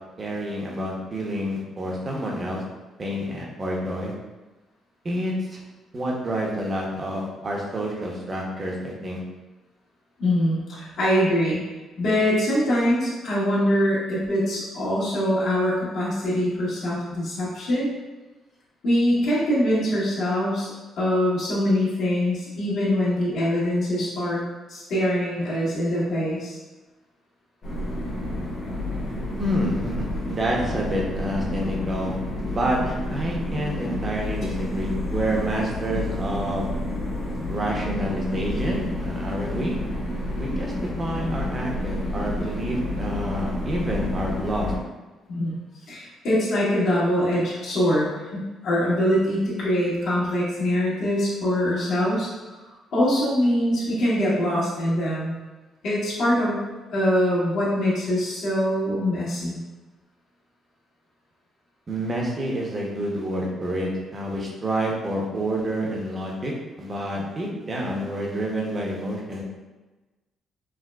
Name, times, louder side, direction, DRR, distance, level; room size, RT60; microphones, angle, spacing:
voice 1, 0.2-2.6 3.0-4.1 5.0-5.6 5.9-9.2 29.4-32.2 32.5-36.7 37.5-39.7 40.4-40.7 41.0-44.7 61.9-66.5 66.8-69.4, right 1 dB, 30° right, -2 dB, 0.7 m, -28 dB
voice 2, 10.2-11.6 12.0-17.9 18.8-20.7 21.0-24.4 24.7-26.6 45.3-45.6 45.9-52.6 52.9-55.3 55.8-56.6 56.9-59.6, equal, 65° left, -8 dB, 1.3 m, -23 dB
sound 1, 27.6-44.8, left 1 dB, 50° left, 1.2 m, -30 dB
4.6 x 2.1 x 2.2 m, 1.2 s
cardioid pair, 120°, 0 cm